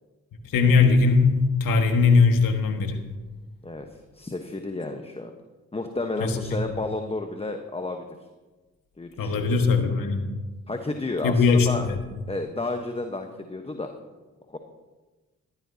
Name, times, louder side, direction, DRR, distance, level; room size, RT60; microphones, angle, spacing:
voice 1, 0.5-3.0 6.2-6.6 9.2-10.3 11.2-12.0, left 4 dB, 70° left, 5 dB, 1.7 m, -20 dB
voice 2, 4.1-5.3 5.7-8.0 9.0-9.6 10.7-11.9 12.3-13.9 14.5-14.6, left 2 dB, 15° left, 5 dB, 1.1 m, -31 dB
15.0 x 12.5 x 2.8 m, 1.2 s
hypercardioid pair, 45°, 35 cm